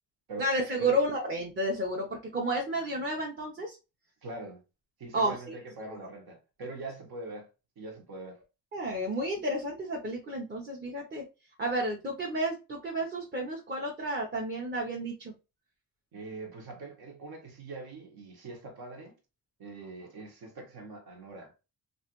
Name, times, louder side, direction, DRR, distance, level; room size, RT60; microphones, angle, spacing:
voice 1, 0.4-3.8 5.1-5.5 6.0-6.1 8.7-11.2 11.6-15.3, right 1 dB, 30° right, 0.7 m, -31 dB
voice 2, 4.2-4.6 5.0-7.5 7.8-8.4 16.1-19.2 19.6-21.5, right 2 dB, 75° right, 1.2 m, -43 dB
3.1 x 2.5 x 2.9 m
wide cardioid pair, 130°, 37 cm